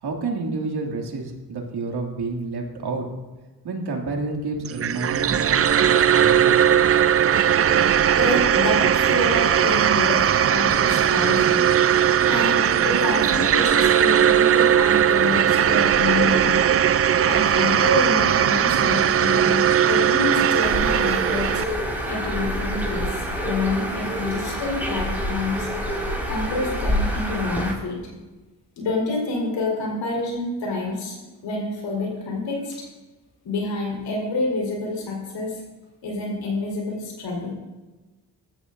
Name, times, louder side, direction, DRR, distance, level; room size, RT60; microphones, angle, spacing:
voice 1, 0.0-3.1 3.6-6.6, right 3 dB, 65° right, 1 dB, 2.5 m, -29 dB
sound 1, 4.7-21.6, right 9 dB, 35° right, 0.5 m, -19 dB
voice 2, 8.1-11.7 12.3-16.6 17.2-21.6 22.1-25.7 26.3-28.0 28.8-31.2 31.4-32.8 33.4-35.6 36.0-37.5, left 2 dB, 90° left, -2 dB, 4.4 m, -27 dB
Bird, 20.6-27.7, equal, 5° right, 4.6 m, -27 dB
17.0 x 13.0 x 2.6 m, 1.2 s
cardioid pair, 65°, 42 cm